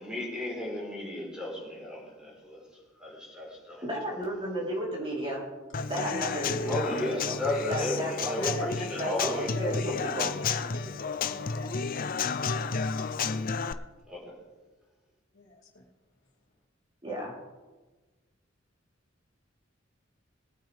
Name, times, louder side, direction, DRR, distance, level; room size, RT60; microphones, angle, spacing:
voice 1, 0.0-2.6 3.0-3.8 6.7-9.5 14.1-14.3, left 1 dB, 5° right, -4 dB, 4.3 m, -34 dB
voice 2, 3.8-5.4 5.9-7.4 7.7-8.4 9.0-10.3 17.0-17.3, equal, 25° right, -4 dB, 3.7 m, -33 dB
Human voice / Acoustic guitar / Drum, 5.7-13.7, left 5 dB, 45° left, 0.5 m, -32 dB
voice 3, 8.4-13.4 15.3-15.8, left 1 dB, 85° left, -2 dB, 2.9 m, -41 dB
21.5 x 9.0 x 3.5 m, 1.2 s
head